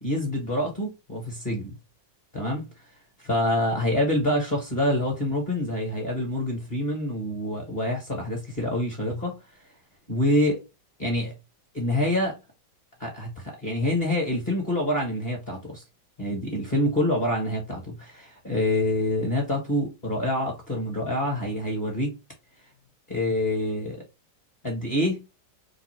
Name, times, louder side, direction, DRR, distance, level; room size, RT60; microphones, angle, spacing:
voice 1, 0.0-1.7 2.3-2.7 3.2-9.4 10.1-10.6 11.0-11.3 11.7-12.4 13.0-15.8 16.2-22.2 23.1-24.0 24.6-25.2, left 1 dB, 30° left, 1.0 m, -26 dB
3.2 x 2.4 x 4.3 m
omnidirectional pair, 2.1 m